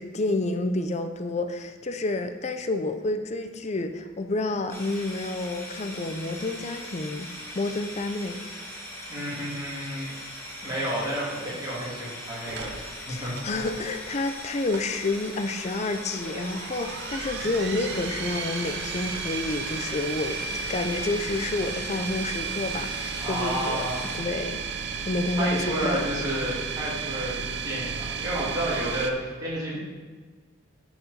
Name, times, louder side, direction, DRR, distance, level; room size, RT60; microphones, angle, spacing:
voice 1, 0.0-8.4 13.1-23.9 24.1-26.0, left 2 dB, 35° left, 8 dB, 0.5 m, -29 dB
sound 1, 4.7-24.2, left 1 dB, 15° left, 1.9 m, -40 dB
voice 2, 9.1-10.2 10.6-11.2 11.6-13.3 21.9-22.2 23.2-24.0 25.3-29.8, right 1 dB, 20° right, -7 dB, 2.9 m, -31 dB
sound 2, 12.4-29.1, right 6 dB, 60° right, 0.6 m, -34 dB
9.5 x 4.9 x 5.1 m, 1.4 s
head